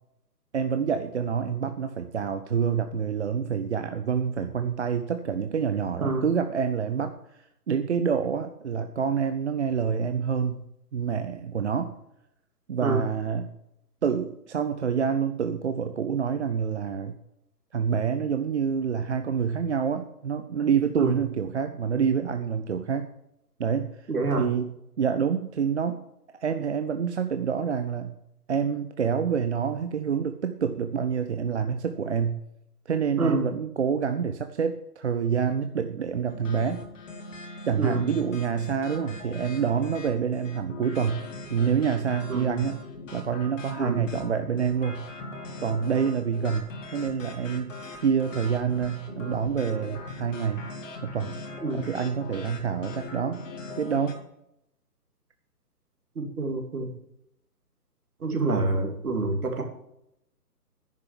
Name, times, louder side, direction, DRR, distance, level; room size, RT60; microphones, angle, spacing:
voice 1, 0.5-7.1 7.7-10.7 10.9-11.9 12.7-13.5 14.0-17.2 17.7-23.1 23.6-23.9 24.4-26.0 26.3-28.2 28.5-32.4 32.9-36.8 37.6-41.2 41.5-42.8 43.1-45.1 45.6-47.8 48.0-50.7 51.0-51.4 51.7-53.4 53.8-54.2, right 7 dB, 45° right, 9 dB, 0.6 m, -27 dB
voice 2, 24.1-24.5 33.2-33.5 37.8-38.1 42.3-42.6 43.8-44.1 51.6-51.8 56.2-56.9 58.2-59.6, right 3 dB, 65° right, 3 dB, 2.8 m, -27 dB
sound 1, 36.3-54.1, left 3 dB, 50° left, 2.4 m, -41 dB
10.5 x 6.5 x 7.5 m, 0.80 s
figure-of-eight pair, 140°, 48 cm